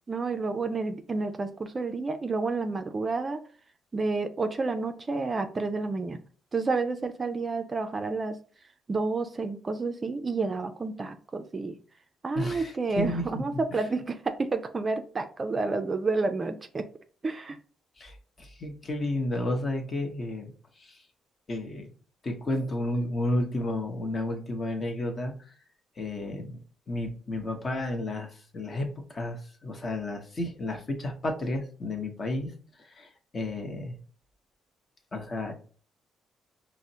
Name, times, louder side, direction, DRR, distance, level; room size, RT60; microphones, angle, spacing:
voice 1, 0.1-3.4 3.9-6.2 6.5-8.4 8.9-11.8 12.2-16.9 17.2-17.6, right 3 dB, 30° right, 0.3 m, -30 dB
voice 2, 12.3-13.8 18.0-20.5 20.8-21.0 21.5-21.9 22.2-25.5 26.0-34.0 35.1-35.5, left 1 dB, 35° left, 0.8 m, -32 dB
4.9 x 2.0 x 2.7 m
cardioid pair, 90°, 0 cm